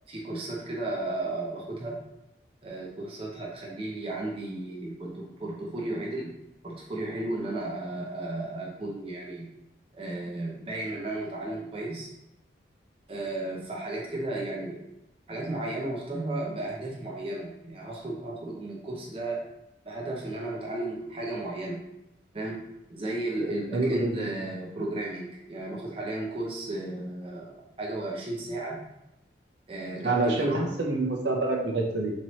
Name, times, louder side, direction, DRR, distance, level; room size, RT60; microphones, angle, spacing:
voice 1, 0.1-2.0 2.6-6.3 6.6-9.5 9.9-12.1 13.1-14.8 15.3-19.4 19.8-21.8 22.3-22.6 22.9-28.8 29.7-30.7, right 2 dB, 30° right, -3 dB, 0.5 m, -34 dB
voice 2, 23.4-24.3 30.0-30.5 30.8-32.1, right 2 dB, 75° right, 0 dB, 0.8 m, -27 dB
4.2 x 3.0 x 3.0 m, 0.91 s
head